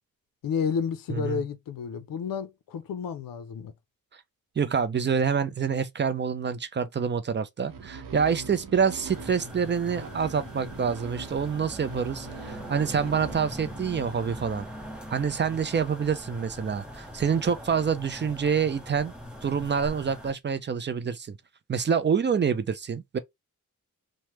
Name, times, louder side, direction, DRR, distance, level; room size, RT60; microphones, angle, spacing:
voice 1, 0.4-3.7, left 6 dB, 70° left, 0.5 m, -31 dB
voice 2, 1.1-1.4 4.6-14.7 15.1-19.1 19.4-21.4 21.7-23.2, right 6 dB, 35° right, 0.4 m, -27 dB
sound 1, 7.6-15.1, right 5 dB, 65° right, 0.7 m, -43 dB
sound 2, 9.0-20.3, equal, 5° right, 0.8 m, -42 dB
3.2 x 2.1 x 2.9 m
wide cardioid pair, 125°, 35 cm